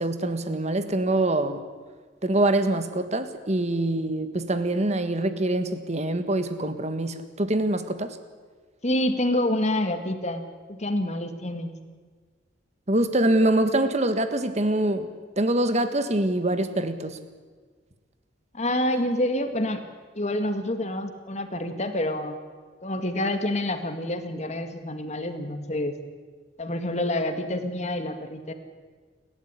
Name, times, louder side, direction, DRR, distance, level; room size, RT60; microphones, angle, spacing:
voice 1, 0.0-1.6 2.2-8.1 12.9-15.1 15.4-17.2, right 1 dB, 40° right, 10 dB, 1.6 m, -24 dB
voice 2, 8.8-11.7 18.5-19.8 20.2-22.4 22.8-25.9 26.6-28.5, left 1 dB, 40° left, 8 dB, 2.0 m, -27 dB
29.5 x 12.5 x 9.8 m, 1.5 s
head